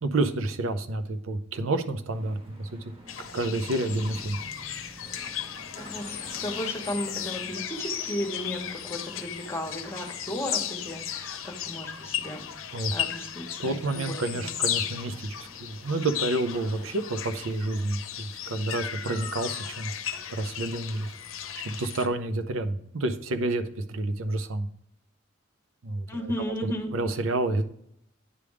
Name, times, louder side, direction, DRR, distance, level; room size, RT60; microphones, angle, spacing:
voice 1, 0.0-2.9 3.2-4.4 12.7-12.9 13.6-19.9 20.3-21.1 21.6-24.7 25.8-26.3 26.6-27.6, right 2 dB, 75° right, 9 dB, 0.6 m, -29 dB
sound 1, 2.1-20.7, equal, 30° right, 1.2 m, -51 dB
sound 2, 3.1-22.1, left 9 dB, 80° left, 0.7 m, -35 dB
voice 2, 5.7-14.5 26.1-26.9, equal, 15° left, 2 dB, 1.2 m, -35 dB
9.8 x 3.4 x 4.8 m, 0.73 s
head